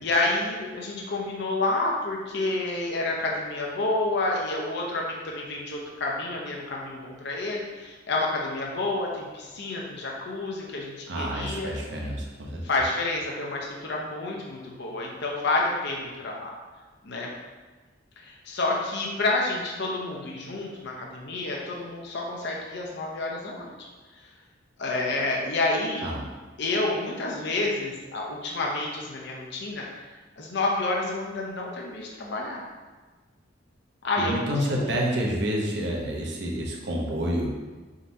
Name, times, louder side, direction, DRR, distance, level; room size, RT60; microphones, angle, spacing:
voice 1, 0.0-11.7 12.6-16.5 17.0-17.3 18.2-23.9 24.8-26.1 26.6-29.8 30.4-32.6 34.0-34.9, left 2 dB, 65° left, -2 dB, 0.7 m, -29 dB
voice 2, 11.1-12.6 26.0-26.2 34.2-37.5, equal, 65° right, -1 dB, 0.7 m, -28 dB
4.2 x 3.8 x 2.7 m, 1.3 s
head